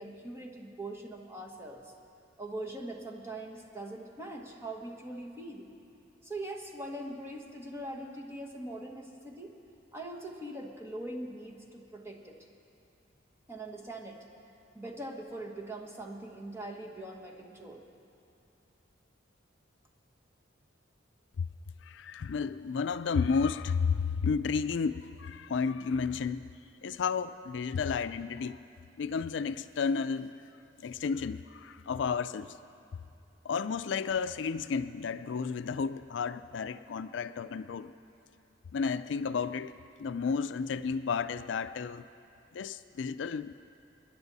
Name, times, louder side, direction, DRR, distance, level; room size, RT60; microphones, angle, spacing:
voice 1, 0.0-1.9 2.4-5.7 6.2-9.5 9.9-12.4 13.5-14.2 14.7-17.8, right 1 dB, 15° right, 0 dB, 1.4 m, -42 dB
voice 2, 21.8-26.5 26.8-28.6 29.0-30.3 30.8-32.6 33.4-37.9 38.7-39.7 40.0-42.1 42.5-43.5, left 5 dB, 70° left, 12 dB, 0.4 m, -32 dB
28.0 x 10.5 x 4.1 m, 2.7 s
head